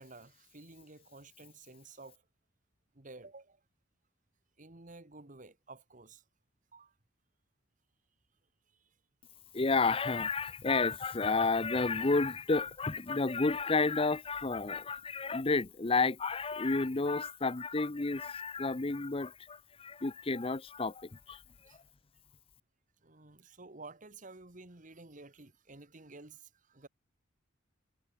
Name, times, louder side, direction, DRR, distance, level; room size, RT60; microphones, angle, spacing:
voice 1, 0.0-2.2 2.9-3.6 4.6-6.2 6.7-6.9 8.7-8.9 21.7-21.8 23.0-26.9, right 3 dB, 40° right, 1.8 m, -52 dB
voice 2, 9.5-21.4, left 3 dB, 30° left, 0.7 m, -31 dB
head